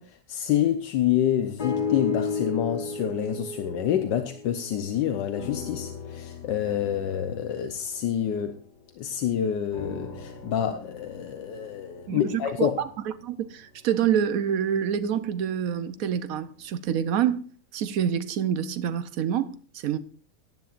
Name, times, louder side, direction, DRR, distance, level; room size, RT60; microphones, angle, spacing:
voice 1, 0.0-8.6 9.0-12.8, left 10 dB, 80° left, 1.5 m, -27 dB
sound 1, 1.6-4.9 5.3-9.1 9.7-13.9 14.6-14.7, left 4 dB, 35° left, 0.9 m, -35 dB
voice 2, 12.1-12.9 13.2-17.4 17.7-20.0, right 8 dB, 60° right, 1.1 m, -27 dB
17.0 x 10.5 x 2.5 m
omnidirectional pair, 1.9 m